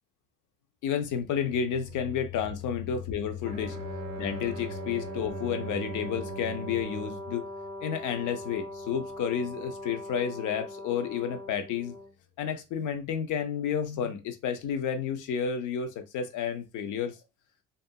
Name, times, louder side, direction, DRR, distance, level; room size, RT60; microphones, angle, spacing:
voice 1, 0.8-3.8 4.2-7.5 7.8-12.0 12.4-17.2, left 7 dB, 85° left, 0.6 m, -31 dB
sound 1, 1.3-10.1, left 9 dB, 50° left, 0.8 m, -44 dB
Brass instrument, 3.4-12.1, left 1 dB, 20° left, 0.5 m, -41 dB
Bowed string instrument, 3.4-7.5, right 9 dB, 60° right, 0.5 m, -41 dB
2.7 x 2.4 x 2.2 m
cardioid pair, 90°, 30 cm